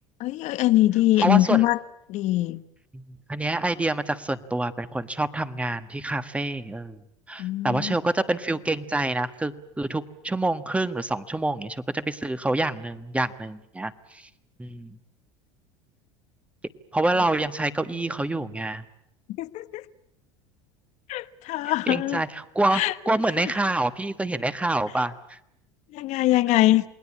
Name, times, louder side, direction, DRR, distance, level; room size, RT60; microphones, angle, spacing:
voice 1, 0.2-1.8 2.1-2.6 7.4-7.9 19.4-19.8 21.1-22.2 22.7-22.9 25.9-26.8, left 16 dB, 55° left, 1.1 m, -22 dB
voice 2, 1.2-1.7 2.9-3.0 3.3-7.0 7.3-14.3 14.6-14.9 16.9-18.8 21.9-25.4, right 2 dB, 10° right, 1.4 m, -27 dB
28.5 x 20.0 x 8.5 m
supercardioid pair, 105°, 14 cm